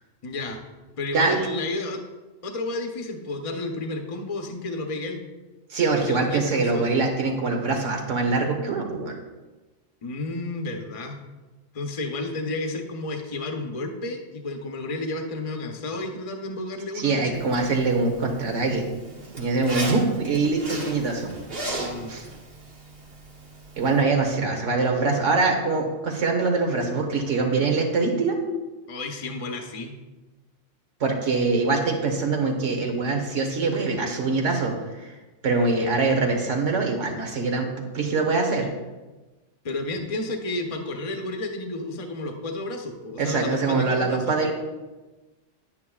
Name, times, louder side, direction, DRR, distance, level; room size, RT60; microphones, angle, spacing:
voice 1, 0.2-0.6 1.0-2.0 2.4-5.2 5.9-6.8 10.0-11.2 11.7-17.4 21.8-22.1 28.9-29.9 39.6-44.3, left 2 dB, 35° left, 4 dB, 0.8 m, -31 dB
voice 2, 5.7-9.2 16.9-18.8 19.4-21.3 22.1-22.2 23.8-28.4 31.0-35.1 35.4-37.7 37.9-38.7 43.2-44.5, right 3 dB, 80° right, 3 dB, 1.5 m, -23 dB
Zipper (clothing), 17.3-24.0, right 2 dB, 50° right, 1.8 m, -37 dB
9.7 x 9.6 x 2.3 m, 1.2 s
omnidirectional pair, 1.3 m